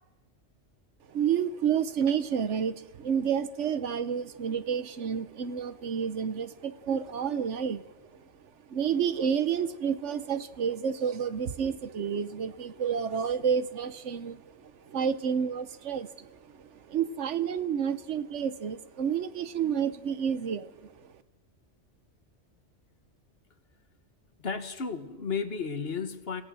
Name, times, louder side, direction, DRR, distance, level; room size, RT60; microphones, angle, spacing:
voice 1, 1.1-7.8 8.7-21.1, right 7 dB, 80° right, 13 dB, 1.2 m, -30 dB
voice 2, 24.4-26.4, left 5 dB, 55° left, 10 dB, 1.5 m, -33 dB
27.0 x 16.5 x 6.4 m, 1.1 s
omnidirectional pair, 1.2 m